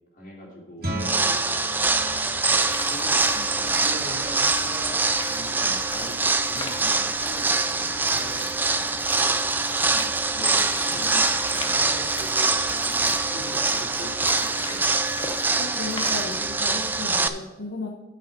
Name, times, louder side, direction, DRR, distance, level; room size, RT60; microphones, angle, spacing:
voice 1, 0.1-2.4 2.8-8.5 9.8-14.9, equal, 45° left, -2 dB, 2.7 m, -42 dB
Guitar, 0.8-6.3, right 1 dB, 55° right, 2.2 m, -39 dB
sound 1, 1.0-17.3, right 3 dB, 10° right, 0.4 m, -24 dB
sound 2, 2.6-16.6, left 2 dB, 25° left, 0.8 m, -40 dB
voice 2, 15.6-17.9, left 3 dB, 65° left, 0 dB, 0.9 m, -35 dB
8.6 x 5.4 x 7.6 m, 1.1 s
head